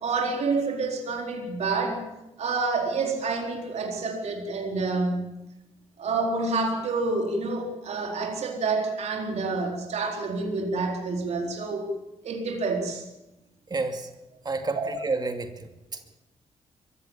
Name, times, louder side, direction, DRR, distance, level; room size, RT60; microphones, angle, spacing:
voice 1, 0.0-2.0 2.4-5.3 6.0-11.9 12.2-13.1 14.8-14.9, right 3 dB, 65° right, 2 dB, 4.2 m, -28 dB
voice 2, 13.7-14.1 14.4-16.0, right 3 dB, 35° right, 6 dB, 2.4 m, -30 dB
22.5 x 15.5 x 7.4 m, 0.92 s
cardioid pair, 85°, 12 cm